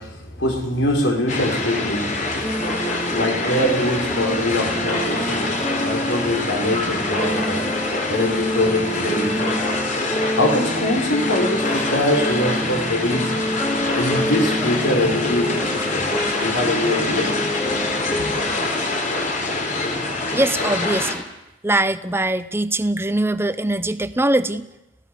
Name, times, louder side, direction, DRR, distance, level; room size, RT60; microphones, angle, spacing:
voice 1, 0.0-2.4 2.8-9.6 10.4-13.3 13.9-16.1 16.4-17.3, left 1 dB, 70° left, 4.7 m, -23 dB
sound 1, 1.3-21.1, left 2 dB, 40° left, 4.0 m, -25 dB
sound 2, 2.4-18.7, equal, 15° left, 1.3 m, -28 dB
voice 2, 20.3-21.2 21.6-24.7, right 1 dB, 10° right, 0.8 m, -22 dB
29.5 x 17.0 x 6.8 m
head